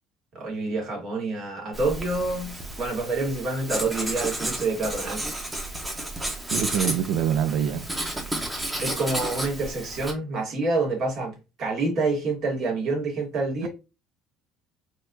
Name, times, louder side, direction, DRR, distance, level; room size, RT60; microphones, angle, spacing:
voice 1, 0.3-5.2 8.8-13.7, right 3 dB, 55° right, 2.1 m, -27 dB
Writing, 1.7-10.1, right 1 dB, 15° right, 1.1 m, -32 dB
voice 2, 6.5-7.9 13.6-13.7, right 9 dB, 70° right, 0.6 m, -25 dB
4.2 x 3.2 x 2.7 m
cardioid pair, 105°, 0 cm